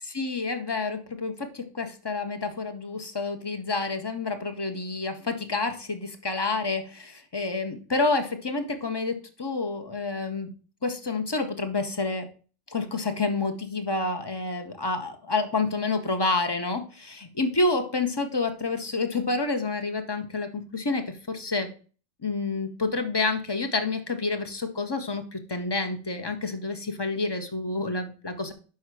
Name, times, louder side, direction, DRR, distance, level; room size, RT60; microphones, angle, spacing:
voice 1, 0.1-10.5 10.8-12.3 12.7-21.7 22.2-28.5, left 3 dB, 25° left, 6 dB, 0.6 m, -29 dB
5.8 x 5.5 x 4.6 m, 0.38 s
omnidirectional pair, 1.5 m